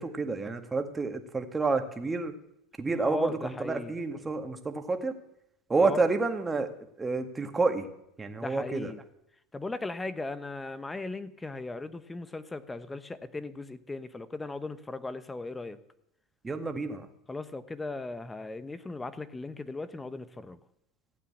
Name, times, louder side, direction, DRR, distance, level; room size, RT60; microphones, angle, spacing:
voice 1, 0.0-2.3 2.8-5.2 5.7-6.7 7.0-7.9 8.2-8.9 16.4-17.1, right 3 dB, 15° right, 6 dB, 1.9 m, -29 dB
voice 2, 3.0-3.9 5.8-6.1 8.4-9.0 9.5-15.8 17.3-20.6, left 2 dB, 15° left, 13 dB, 1.1 m, -37 dB
16.0 x 9.0 x 8.8 m, 0.79 s
supercardioid pair, 115°, 0 cm